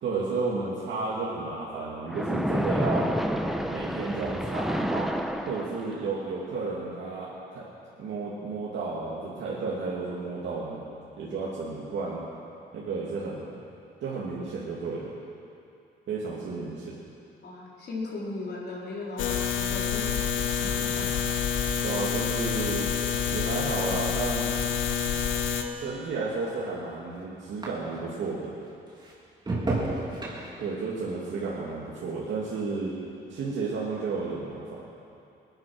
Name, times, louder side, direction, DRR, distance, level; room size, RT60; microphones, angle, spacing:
voice 1, 0.0-3.1 3.7-5.1 5.4-7.6 8.0-10.8 11.2-12.2 12.7-13.6 14.0-15.1 16.1-17.0 21.8-22.9 23.3-24.5 25.8-28.5 30.6-32.9 33.3-34.8, right 4 dB, 70° right, -7 dB, 2.6 m, -32 dB
Splash splatter, 2.1-6.1, equal, ahead, 0.9 m, -29 dB
voice 2, 17.4-20.1 20.5-21.2, left 3 dB, 55° left, -4 dB, 4.2 m, -38 dB
sound 1, 19.2-25.6, left 7 dB, 75° left, 1.2 m, -28 dB
sound 2, 25.6-28.3 28.6-33.2 33.5-34.0, right 2 dB, 20° right, 3.1 m, -38 dB
19.5 x 10.5 x 6.2 m, 2.6 s
cardioid pair, 90°, 20 cm